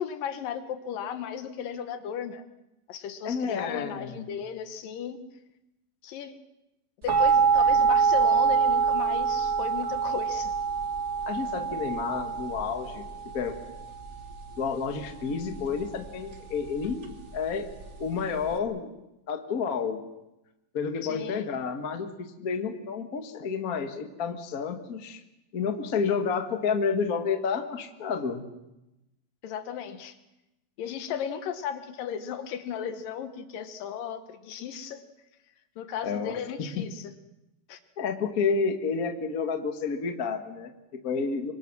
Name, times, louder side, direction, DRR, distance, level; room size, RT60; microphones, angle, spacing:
voice 1, 0.0-2.4 2.9-5.2 6.0-6.3 7.0-10.5 21.0-21.4 29.4-30.2 30.8-35.0 35.8-37.0 37.7-37.8, left 8 dB, 75° left, 10 dB, 2.8 m, -35 dB
voice 2, 3.2-4.2 11.3-13.1 13.3-13.6 14.6-17.7 18.0-18.9 19.3-20.0 20.7-25.2 25.5-28.4 36.0-36.9 38.0-41.5, left 5 dB, 45° left, 5 dB, 1.1 m, -30 dB
sound 1, 7.1-18.6, right 6 dB, 80° right, 0.6 m, -26 dB
26.0 x 24.0 x 6.1 m, 0.94 s
omnidirectional pair, 4.1 m